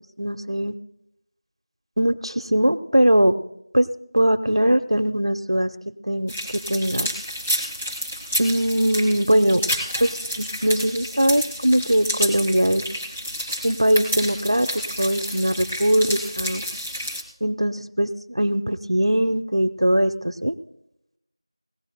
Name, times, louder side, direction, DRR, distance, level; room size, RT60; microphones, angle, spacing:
voice 1, 0.2-0.8 2.0-3.4 3.7-3.9 4.1-7.1 8.4-9.6 10.0-12.8 13.6-16.6 17.4-20.5, equal, 85° right, 9 dB, 1.0 m, -21 dB
sound 1, 6.3-17.2, equal, 15° left, 1.5 m, -30 dB
21.0 x 17.5 x 2.2 m, 0.79 s
figure-of-eight pair, 180°, 3 cm